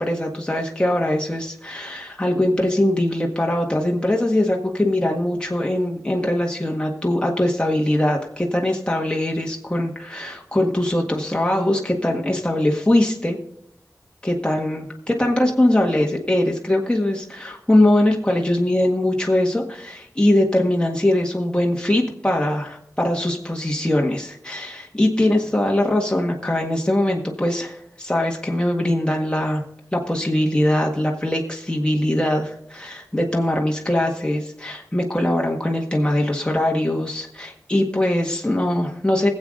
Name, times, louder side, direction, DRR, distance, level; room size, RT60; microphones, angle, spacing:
voice 1, 0.0-13.4 14.2-29.6 29.9-39.3, left 1 dB, 15° left, 0 dB, 1.7 m, -21 dB
20.5 x 8.0 x 3.8 m, 0.74 s
wide cardioid pair, 70°, 6 cm